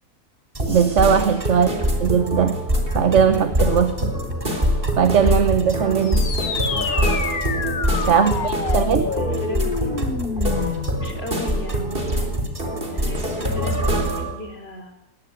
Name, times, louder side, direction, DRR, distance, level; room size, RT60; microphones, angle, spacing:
sound 1, 0.5-14.2, equal, 25° right, 2.5 m, -25 dB
sound 2, 0.6-14.3, right 1 dB, 40° right, 4.0 m, -27 dB
voice 1, 0.7-1.7 2.0-2.6 2.9-4.1 5.0-6.3 8.1-9.1, right 7 dB, 60° right, 11 dB, 1.3 m, -19 dB
voice 2, 1.5-1.9 8.2-9.9 10.4-14.9, left 1 dB, 45° left, 6 dB, 4.1 m, -36 dB
sound 3, 6.0-11.1, left 6 dB, 80° left, 1.8 m, -28 dB
21.5 x 19.0 x 9.6 m, 0.89 s
omnidirectional pair, 1.5 m